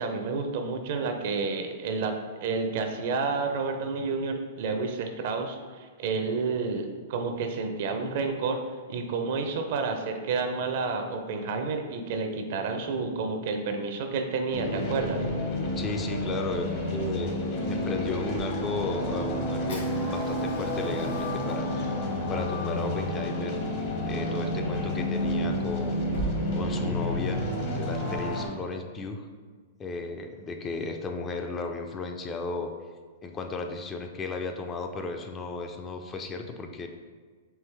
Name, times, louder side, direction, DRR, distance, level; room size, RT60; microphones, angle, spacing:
voice 1, 0.0-8.6 8.9-15.3, right 4 dB, 55° right, 6 dB, 0.5 m, -30 dB
sound 1, 14.5-28.5, left 1 dB, 50° left, 0.9 m, -30 dB
voice 2, 15.8-17.3 17.7-21.9 22.3-23.6 24.0-26.3 26.5-27.4 27.7-29.3 29.8-32.7 33.2-36.9, left 3 dB, 20° left, 5 dB, 0.4 m, -35 dB
Fire, 19.7-26.3, right 2 dB, 90° left, 1.4 m, -42 dB
4.6 x 3.0 x 3.3 m, 1.5 s
hypercardioid pair, 135°, 0 cm